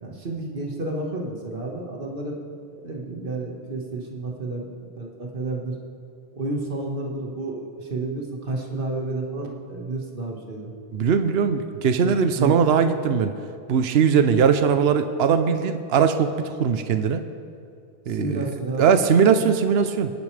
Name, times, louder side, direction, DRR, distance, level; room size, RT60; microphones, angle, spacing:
voice 1, 0.0-2.4 2.8-5.8 6.3-10.7 12.0-12.5 18.1-19.0, right 2 dB, 55° right, -1 dB, 1.9 m, -31 dB
voice 2, 10.9-13.3 13.7-17.2 18.1-18.5 18.8-20.1, right 6 dB, 70° right, 9 dB, 0.9 m, -20 dB
25.5 x 10.5 x 3.4 m, 2.4 s
omnidirectional pair, 1.1 m